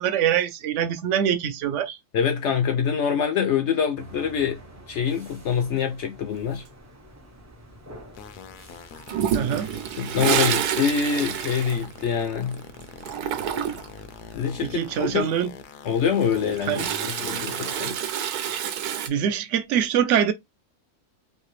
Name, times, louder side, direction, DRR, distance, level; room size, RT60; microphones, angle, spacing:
voice 1, 0.0-2.0 9.3-9.7 14.6-15.5 16.7-16.9 19.1-20.3, right 9 dB, 65° right, 0.8 m, -24 dB
voice 2, 2.1-4.6 4.9-6.6 10.0-12.6 14.3-15.3 15.8-16.8 17.2-18.0, left 7 dB, 65° left, 0.7 m, -25 dB
sound 1, 4.0-14.6, right 1 dB, 25° right, 0.4 m, -49 dB
sound 2, 8.1-17.9, left 7 dB, 80° left, 1.1 m, -43 dB
Toilet flush, 9.1-12.6 12.8-14.0 16.0-19.1, right 9 dB, 80° right, 1.1 m, -28 dB
3.3 x 2.8 x 3.1 m
omnidirectional pair, 1.6 m